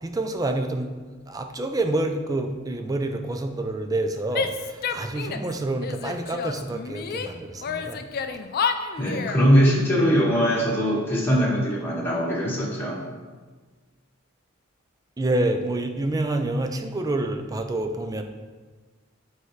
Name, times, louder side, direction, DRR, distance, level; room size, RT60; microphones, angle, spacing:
voice 1, 0.0-8.0 15.2-18.2, right 2 dB, 15° right, 5 dB, 0.4 m, -28 dB
Female speech woman speaking / Yell, 4.3-5.5 5.8-7.3 7.6-9.5, left 6 dB, 45° left, 0.4 m, -29 dB
voice 2, 9.0-13.0, equal, 10° left, -6 dB, 1.5 m, -21 dB
7.9 x 4.5 x 3.2 m, 1.4 s
head